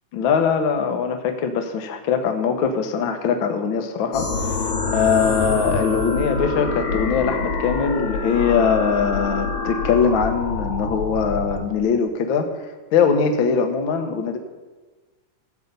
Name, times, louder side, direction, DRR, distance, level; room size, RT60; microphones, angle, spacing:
voice 1, 0.1-12.5 12.9-14.4, left 6 dB, 85° left, 5 dB, 1.1 m, -21 dB
sound 1, 4.1-11.6, left 4 dB, 60° left, 3.0 m, -26 dB
13.0 x 8.0 x 5.4 m, 1.3 s
omnidirectional pair, 3.7 m